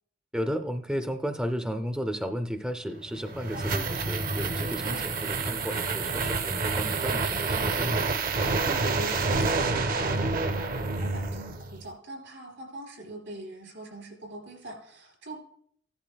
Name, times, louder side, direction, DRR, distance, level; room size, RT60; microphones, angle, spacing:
voice 1, 0.3-8.1, equal, 5° right, 7 dB, 0.4 m, -33 dB
sound 1, 3.0-11.8, right 3 dB, 45° right, 0.6 m, -28 dB
voice 2, 3.5-3.9 4.8-5.1 8.2-15.4, right 1 dB, 75° right, 1 dB, 3.2 m, -42 dB
15.0 x 10.5 x 2.3 m, 0.65 s
head